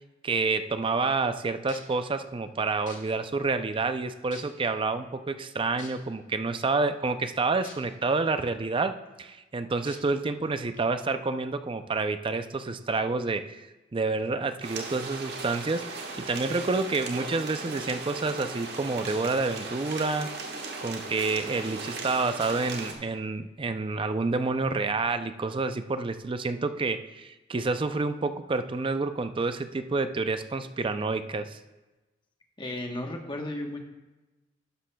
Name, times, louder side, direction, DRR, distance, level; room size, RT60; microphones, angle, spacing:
voice 1, 0.2-13.6 13.9-20.3 20.8-31.6, right 3 dB, 30° right, 10 dB, 0.4 m, -29 dB
sound 1, 1.7-1.9 2.9-3.0 3.7-3.8 4.3-4.7 5.8-5.9 7.6-7.7 8.3-8.4 9.9-10.0 10.7-10.8, left 5 dB, 45° left, 1.5 m, -45 dB
sound 2, 14.6-22.9, right 3 dB, 60° right, 1.4 m, -37 dB
voice 2, 32.6-33.8, left 1 dB, 25° left, 2 dB, 1.1 m, -34 dB
11.5 x 11.0 x 2.3 m, 1.1 s
head